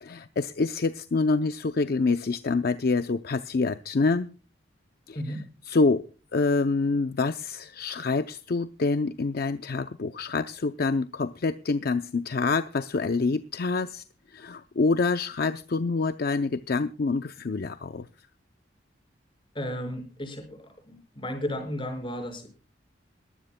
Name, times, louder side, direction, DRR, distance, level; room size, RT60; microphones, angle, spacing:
voice 1, 0.0-4.3 5.1-5.4 5.7-6.0 6.3-14.0 14.3-18.1, left 3 dB, 55° left, 10 dB, 0.5 m, -26 dB
voice 2, 19.5-20.6 20.9-22.5, equal, 30° left, 4 dB, 5.4 m, -33 dB
21.5 x 15.5 x 2.2 m, 0.36 s
head